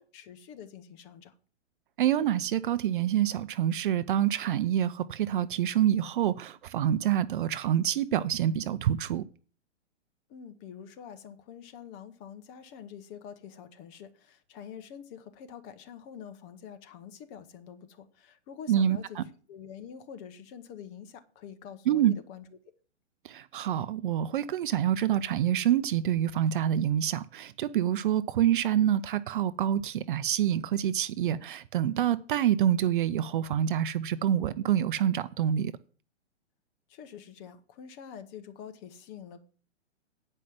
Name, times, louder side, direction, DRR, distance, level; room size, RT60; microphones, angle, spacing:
voice 1, 0.0-1.3 10.3-19.2 19.5-22.4 36.9-39.4, left 8 dB, 25° left, 1.0 m, -46 dB
voice 2, 2.0-9.2 18.7-19.2 21.9-22.1 23.2-35.7, right 10 dB, 45° right, 0.6 m, -27 dB
9.1 x 5.4 x 7.4 m
hypercardioid pair, 140°, 36 cm